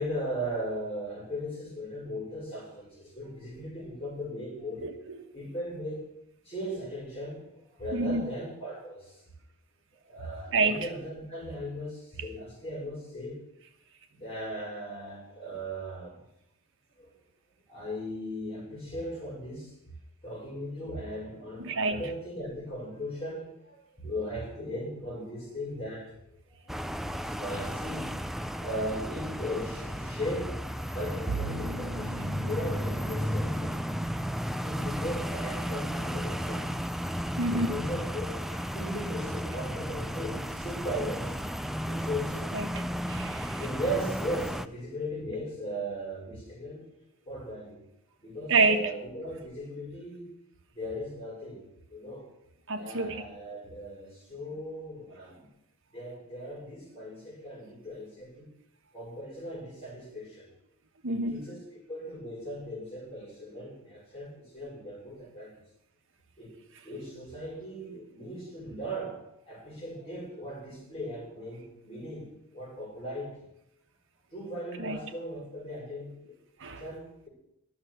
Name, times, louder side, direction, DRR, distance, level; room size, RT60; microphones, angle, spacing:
voice 1, 0.0-4.9 5.3-6.1 6.5-9.3 10.0-13.4 14.1-16.2 16.9-17.1 17.7-19.8 20.2-26.2 26.5-26.6 27.2-28.2 28.6-30.6 30.9-33.8 34.6-36.8 37.5-41.4 41.9-42.6 43.6-46.9 47.3-47.8 48.2-50.3 50.7-52.3 52.8-55.5 55.9-58.5 58.9-60.5 61.1-65.6 66.4-66.5 66.8-73.5 74.3-76.4 76.8-77.3, equal, 25° left, -3 dB, 5.4 m, -38 dB
voice 2, 4.8-5.3 7.9-8.3 10.5-10.9 21.6-22.1 37.4-37.8 42.5-43.7 48.5-48.9 52.7-53.2 61.0-61.3 74.8-75.0 76.6-76.8, right 3 dB, 65° right, 7 dB, 1.2 m, -28 dB
sound 1, 26.7-44.7, equal, ahead, 0.4 m, -34 dB
Bowed string instrument, 31.3-36.4, right 3 dB, 45° right, 0.9 m, -42 dB
11.5 x 6.8 x 9.7 m, 0.83 s
head